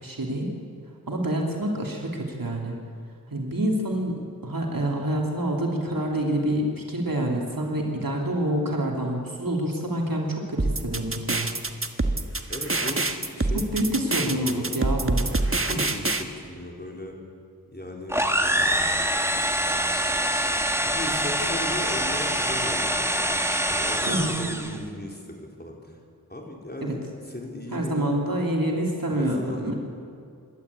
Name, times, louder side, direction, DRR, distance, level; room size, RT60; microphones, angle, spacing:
voice 1, 0.0-0.5 1.1-2.8 3.3-11.5 13.5-15.3 15.7-15.8 24.1-24.6 26.8-26.9 27.7-29.7, right 1 dB, 65° right, 0 dB, 3.2 m, -27 dB
sound 1, 10.6-16.2, right 2 dB, 35° right, 1.4 m, -25 dB
voice 2, 12.5-14.8 15.6-17.2 17.7-19.4 20.8-23.3 23.7-26.0 26.3-28.1 29.1-29.8, left 1 dB, 25° left, 0 dB, 4.2 m, -37 dB
sound 2, 18.1-24.8, right 1 dB, 5° right, 1.5 m, -25 dB
26.5 x 12.0 x 8.4 m, 2.4 s
wide cardioid pair, 45°, 37 cm